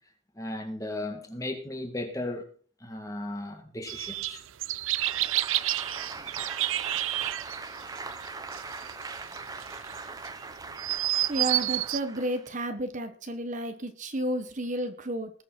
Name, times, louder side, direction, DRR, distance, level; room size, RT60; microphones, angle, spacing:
voice 1, 0.3-2.5 2.8-4.4, left 1 dB, 15° left, 1.9 m, -36 dB
sound 1, 3.9-12.0, right 15 dB, 70° right, 0.5 m, -30 dB
Applause, 4.8-12.6, right 3 dB, 15° right, 0.7 m, -41 dB
voice 2, 11.3-15.3, right 1 dB, 35° right, 1.1 m, -32 dB
20.0 x 7.0 x 4.3 m
head